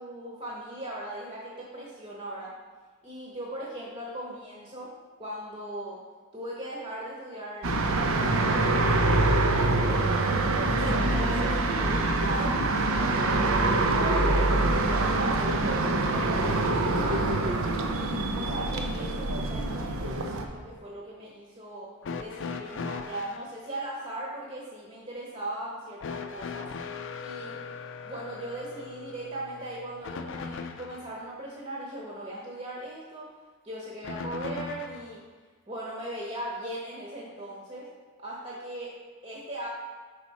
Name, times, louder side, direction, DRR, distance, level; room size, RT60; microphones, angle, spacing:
voice 1, 0.0-2.5 3.0-4.9 5.2-6.0 6.3-10.3 10.8-13.4 13.9-17.6 17.9-21.9 22.2-26.7 27.2-27.6 28.0-33.3 33.6-35.2 35.7-37.9 38.2-38.9 39.2-39.7, right 1 dB, 30° right, -5 dB, 1.0 m, -39 dB
sound 1, 7.6-20.4, right 2 dB, 70° right, 0.6 m, -25 dB
sound 2, 22.0-23.5 26.0-31.1 34.0-35.1 36.3-36.4 37.5-37.6, left 5 dB, 60° left, 0.4 m, -38 dB
6.1 x 4.8 x 4.2 m, 1.4 s
head